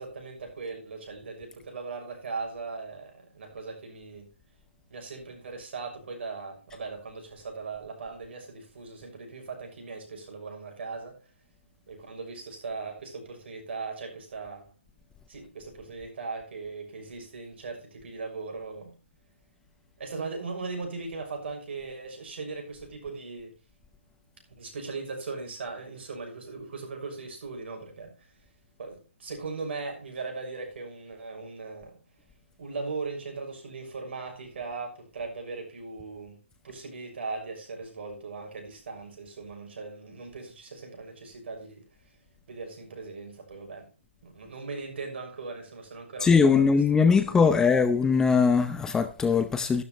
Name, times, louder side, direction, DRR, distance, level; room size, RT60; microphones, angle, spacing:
voice 1, 0.0-4.3 4.9-11.2 11.9-14.6 15.3-18.9 20.0-23.5 24.6-28.1 28.8-32.0 32.6-41.8 42.5-43.9 44.2-46.7 47.3-47.5, right 4 dB, 60° right, 6.3 m, -39 dB
voice 2, 46.2-49.8, left 5 dB, 10° left, 0.7 m, -21 dB
13.0 x 12.0 x 3.2 m
hypercardioid pair, 140°, 7 cm